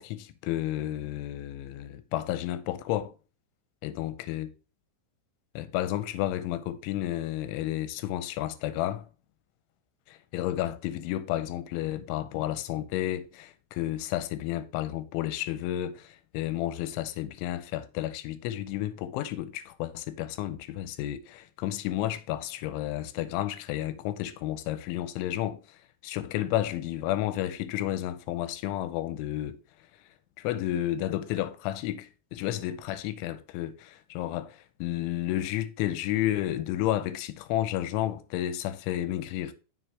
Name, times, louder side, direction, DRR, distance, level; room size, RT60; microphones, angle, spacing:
voice 1, 0.0-3.1 3.8-4.5 5.6-9.0 10.1-29.6 30.4-39.5, left 13 dB, 90° left, 3.0 m, -31 dB
7.4 x 6.4 x 3.2 m
omnidirectional pair, 5.4 m